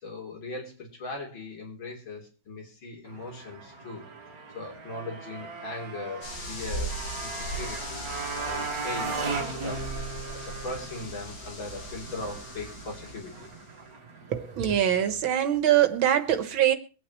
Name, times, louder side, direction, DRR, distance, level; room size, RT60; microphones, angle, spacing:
voice 1, 0.0-4.0 4.5-13.5, left 2 dB, 75° left, 4.2 m, -39 dB
Motorcycle, 3.1-15.2, right 4 dB, 50° right, 2.4 m, -38 dB
sound 1, 6.2-13.7, right 1 dB, 45° left, 2.5 m, -39 dB
voice 2, 14.3-16.7, right 11 dB, 80° right, 2.0 m, -23 dB
23.0 x 8.8 x 3.1 m
omnidirectional pair, 2.2 m